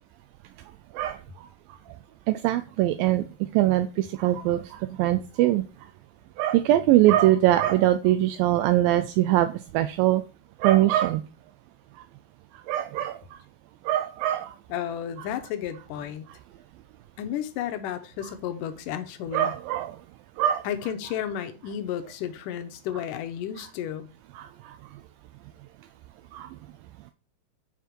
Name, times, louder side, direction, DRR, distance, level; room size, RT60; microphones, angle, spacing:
voice 1, 2.3-3.3 3.5-5.6 6.4-10.2 10.6-11.2 12.7-13.4 13.9-14.5 19.3-20.0 20.4-20.7 24.4-24.7 26.3-26.5, right 14 dB, 85° right, 2.1 m, -22 dB
voice 2, 14.7-16.3 17.2-19.5 20.6-24.1, left 10 dB, 85° left, 1.9 m, -32 dB
8.4 x 5.8 x 4.6 m
omnidirectional pair, 4.6 m